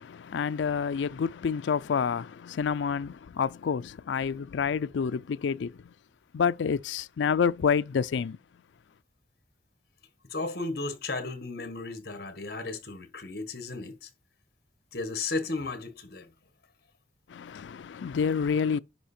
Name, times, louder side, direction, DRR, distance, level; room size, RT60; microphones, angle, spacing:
voice 1, 0.0-5.9 6.3-8.4 17.3-18.8, left 6 dB, 80° left, 0.4 m, -28 dB
voice 2, 10.3-14.1 14.9-16.3, left 3 dB, 55° left, 1.4 m, -34 dB
10.5 x 5.0 x 4.3 m
head